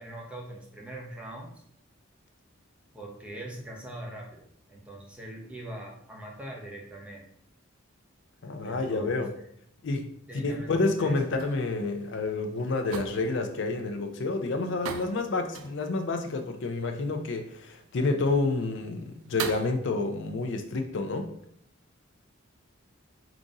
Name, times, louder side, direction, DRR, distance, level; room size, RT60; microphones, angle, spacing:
voice 1, 0.0-1.5 2.9-7.3 8.6-9.1 10.3-11.1, right 1 dB, 5° right, -2 dB, 0.7 m, -42 dB
voice 2, 8.4-9.3 9.8-10.1 10.4-21.3, left 3 dB, 60° left, 5 dB, 0.4 m, -29 dB
sound 1, 11.0-19.7, right 6 dB, 85° right, 0.4 m, -43 dB
3.8 x 2.5 x 3.9 m, 0.67 s
head